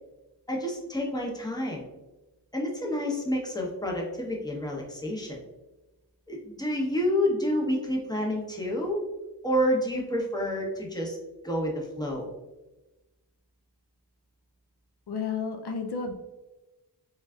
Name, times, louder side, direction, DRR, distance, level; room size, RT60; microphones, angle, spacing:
voice 1, 0.5-1.9 2.5-5.4 6.3-9.0 9.4-11.2 11.4-12.3, equal, 10° left, -1 dB, 0.9 m, -29 dB
voice 2, 15.1-16.1, left 5 dB, 70° left, 3 dB, 0.5 m, -31 dB
3.9 x 3.4 x 2.3 m, 1.1 s
wide cardioid pair, 70°, 41 cm